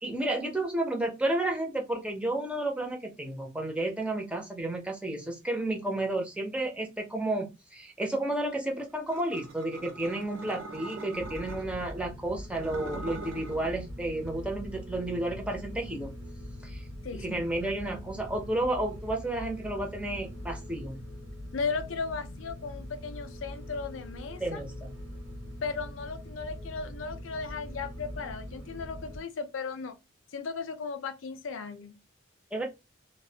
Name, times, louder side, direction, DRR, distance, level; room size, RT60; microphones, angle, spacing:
voice 1, 0.0-16.1 16.6-16.8 17.1-21.0 24.4-24.9 32.5-32.7, right 1 dB, 5° right, 0.5 m, -32 dB
sound 1, 9.1-11.9 12.4-13.7, right 3 dB, 85° right, 0.5 m, -42 dB
sound 2, 11.1-29.2, left 1 dB, 60° right, 0.8 m, -42 dB
voice 2, 17.0-17.5 21.5-24.6 25.6-30.0 30.3-32.0, left 4 dB, 80° left, 0.5 m, -36 dB
2.4 x 2.1 x 2.6 m
head